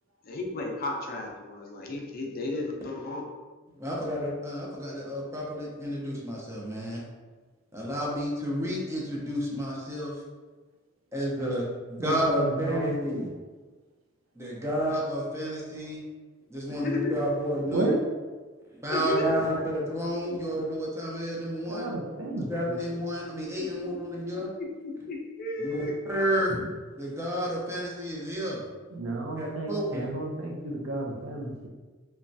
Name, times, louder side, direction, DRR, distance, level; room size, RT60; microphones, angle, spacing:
voice 1, 0.2-3.2 16.7-17.4 18.9-19.7 20.3-20.4 23.6-23.7 24.3-25.9, left 2 dB, 50° left, 0 dB, 0.4 m, -33 dB
voice 2, 3.7-7.0 7.7-10.2 11.1-13.3 14.3-16.0 16.5-17.9 18.7-21.9 22.5-24.5 25.6-26.5 27.0-28.6 29.4-30.1, equal, 15° right, -4 dB, 0.6 m, -30 dB
voice 3, 12.0-13.3 17.7-18.0 21.7-22.8 28.9-31.7, right 2 dB, 85° right, 0 dB, 0.5 m, -32 dB
3.0 x 2.2 x 2.6 m, 1.3 s
head